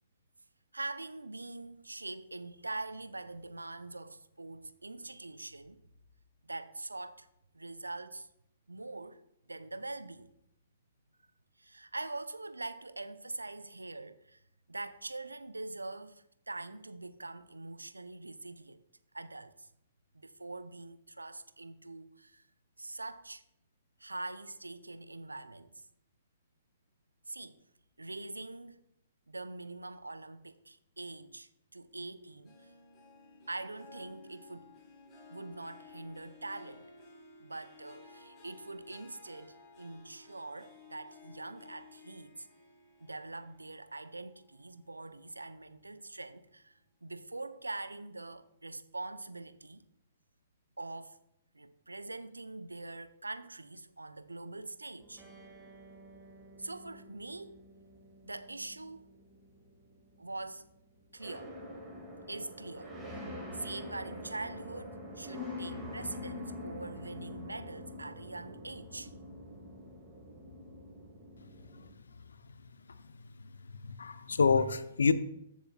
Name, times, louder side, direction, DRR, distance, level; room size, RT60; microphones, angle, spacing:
voice 1, 0.7-5.8 6.4-7.3 7.5-8.3 8.7-9.2 9.5-10.3 11.6-14.4 14.7-18.8 19.1-19.7 20.1-22.5 22.8-23.4 24.0-25.9 27.3-27.6 28.0-28.8 29.3-32.7 33.5-34.7 35.3-36.9 37.4-42.5 43.0-49.8 50.8-51.2 51.5-55.2 56.6-57.6 58.2-59.1 60.2-60.6 61.1-61.6 62.3-63.0 63.5-69.1, right 2 dB, 80° right, 0.7 m, -43 dB
Harp, 32.4-45.2 45.6-46.0 46.5-46.6, left 4 dB, 20° left, 4.3 m, -56 dB
sound 1, 55.0-71.9, left 1 dB, 5° right, 2.3 m, -46 dB
voice 2, 73.8-75.1, left 5 dB, 70° left, 0.7 m, -28 dB
21.0 x 7.2 x 2.4 m
figure-of-eight pair, 115°, 0 cm